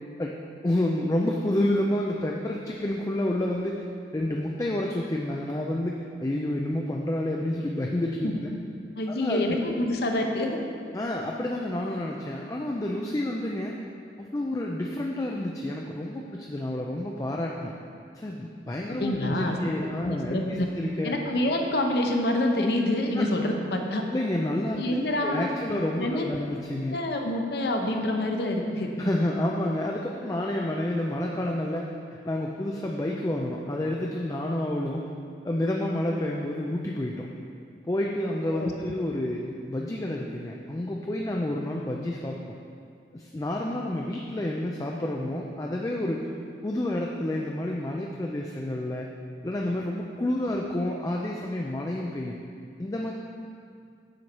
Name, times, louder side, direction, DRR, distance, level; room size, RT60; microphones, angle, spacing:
voice 1, 0.6-3.8 4.1-8.5 9.1-9.7 10.9-13.8 14.2-17.7 18.1-21.2 23.2-23.3 24.0-25.0 25.2-27.0 29.0-31.9 32.2-35.1 35.4-37.3 37.9-42.4 43.1-46.3 46.6-49.1 49.4-52.4 52.8-53.1, left 1 dB, 20° left, -1 dB, 0.4 m, -29 dB
voice 2, 9.0-10.6 18.9-19.6 20.0-20.7 21.0-24.0 24.7-25.5 26.0-26.2 26.9-28.9 38.5-38.7, left 1 dB, 65° left, 2 dB, 0.8 m, -27 dB
7.7 x 4.5 x 5.4 m, 2.3 s
head